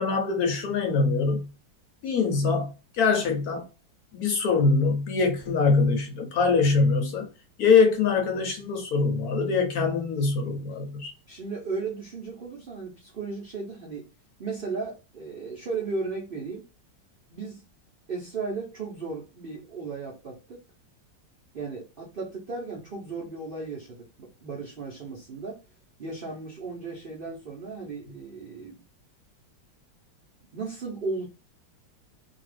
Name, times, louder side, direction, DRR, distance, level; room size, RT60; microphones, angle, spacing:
voice 1, 0.0-1.5 2.0-3.6 4.1-7.3 7.6-11.1, left 4 dB, 65° left, 1.0 m, -23 dB
voice 2, 11.3-14.1 14.4-16.7 17.3-17.6 18.1-20.6 21.5-25.6 26.0-28.8 30.5-31.3, right 4 dB, 60° right, 0.5 m, -35 dB
2.8 x 2.3 x 3.2 m
omnidirectional pair, 1.9 m